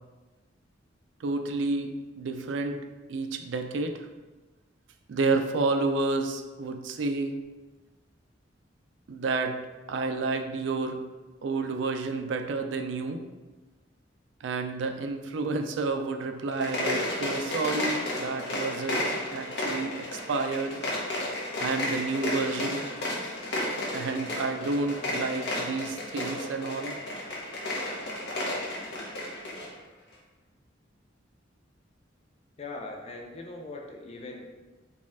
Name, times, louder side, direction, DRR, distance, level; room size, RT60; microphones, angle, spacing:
voice 1, 1.2-2.8 3.1-4.1 5.1-7.4 9.1-9.6 9.9-11.0 11.4-13.2 14.4-20.8 21.6-22.8 23.9-27.0, right 3 dB, 75° right, 6 dB, 0.4 m, -30 dB
sound 1, 16.5-29.7, left 1 dB, 60° left, 0.9 m, -32 dB
voice 2, 32.6-34.4, left 2 dB, 35° left, 2 dB, 0.4 m, -40 dB
4.2 x 2.3 x 3.5 m, 1.2 s
head